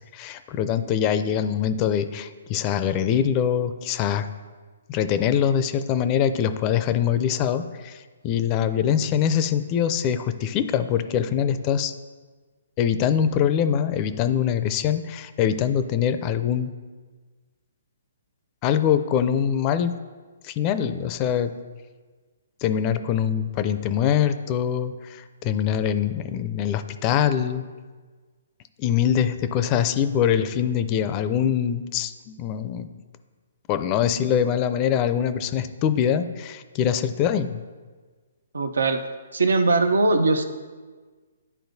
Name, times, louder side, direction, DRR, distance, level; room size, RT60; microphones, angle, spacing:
voice 1, 0.1-4.3 4.9-11.9 12.8-16.7 18.6-19.9 20.4-21.5 22.6-27.6 28.8-32.9 33.7-37.6, left 9 dB, 30° left, 11 dB, 0.4 m, -23 dB
voice 2, 38.5-39.0 39.3-40.4, right 3 dB, 85° right, 8 dB, 0.6 m, -20 dB
11.0 x 4.2 x 2.7 m, 1.4 s
hypercardioid pair, 145°, 0 cm